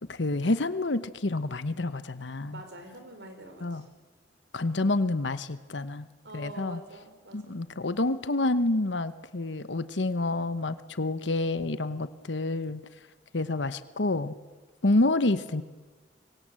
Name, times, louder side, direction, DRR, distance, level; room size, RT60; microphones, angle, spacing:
voice 1, 0.1-2.6 3.6-3.9 4.5-6.1 6.3-6.8 7.3-12.8 13.3-14.3 14.8-15.6, left 2 dB, 80° left, 13 dB, 1.0 m, -28 dB
voice 2, 2.5-3.8 6.2-7.6, right 1 dB, 75° right, 5 dB, 4.6 m, -45 dB
26.0 x 24.0 x 7.6 m, 1.3 s
head